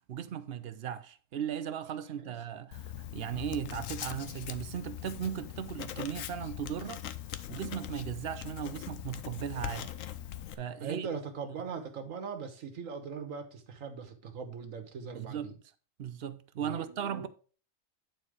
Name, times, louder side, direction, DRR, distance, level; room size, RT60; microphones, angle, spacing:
voice 1, 0.1-7.1 7.5-9.9 10.5-11.1 15.1-15.5 16.0-17.3, right 9 dB, 60° right, 0.7 m, -37 dB
Writing, 2.7-10.5, left 11 dB, 85° left, 1.0 m, -41 dB
voice 2, 10.8-15.5 16.5-17.3, right 6 dB, 90° right, 1.5 m, -40 dB
9.2 x 4.4 x 4.9 m
omnidirectional pair, 1.3 m